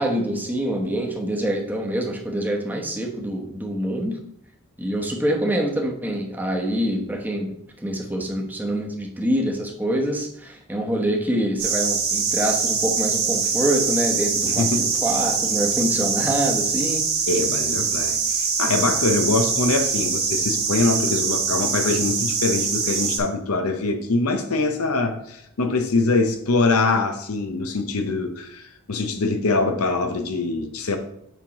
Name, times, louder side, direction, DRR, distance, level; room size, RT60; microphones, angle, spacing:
voice 1, 0.0-4.2 4.8-7.6 7.8-17.1, right 1 dB, 10° right, 1 dB, 0.9 m, -25 dB
sound 1, 11.6-23.2, right 5 dB, 50° right, 1.4 m, -23 dB
voice 2, 14.5-14.9 17.3-31.0, left 3 dB, 85° left, 6 dB, 0.8 m, -23 dB
7.3 x 5.4 x 3.0 m, 0.74 s
head